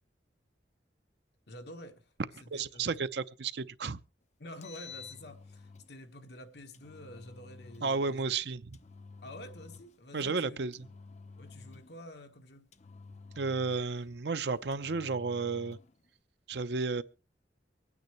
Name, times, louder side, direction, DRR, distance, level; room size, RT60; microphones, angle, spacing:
voice 1, 1.5-2.1 2.4-3.0 4.4-8.4 9.2-10.8 11.4-12.7, left 1 dB, 65° left, 1.4 m, -49 dB
voice 2, 2.5-4.0 7.8-8.8 10.1-10.8 13.4-15.8 16.5-17.0, right 4 dB, 65° right, 0.6 m, -32 dB
Engine, 4.4-5.9 6.7-7.9 8.7-10.0 10.7-12.0 12.7-14.1 14.7-15.9, left 4 dB, 40° left, 0.7 m, -51 dB
24.0 x 9.3 x 3.1 m
head